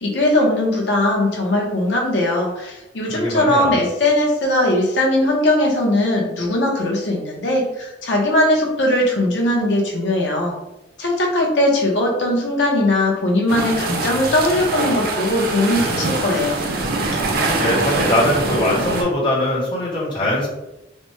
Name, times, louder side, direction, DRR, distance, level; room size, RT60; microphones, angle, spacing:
voice 1, 0.0-10.5 11.0-16.6, left 1 dB, 75° left, -1 dB, 0.8 m, -19 dB
voice 2, 3.1-3.8 17.4-20.5, left 1 dB, 30° left, -6 dB, 1.1 m, -21 dB
sound 1, 13.5-19.0, right 2 dB, 55° right, 0.5 m, -23 dB
3.2 x 2.1 x 3.0 m, 0.94 s
head